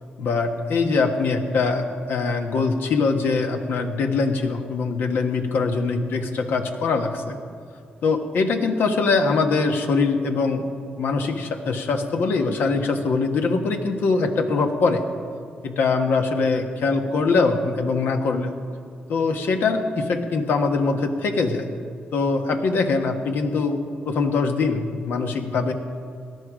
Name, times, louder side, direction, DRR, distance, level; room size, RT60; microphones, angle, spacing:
voice 1, 0.2-7.4 8.0-10.7 11.0-15.0 15.6-18.5 19.1-21.6 22.1-23.8 24.0-25.7, left 4 dB, 80° left, 5 dB, 1.4 m, -22 dB
17.5 x 12.0 x 5.0 m, 2.3 s
cardioid pair, 75°, 3 cm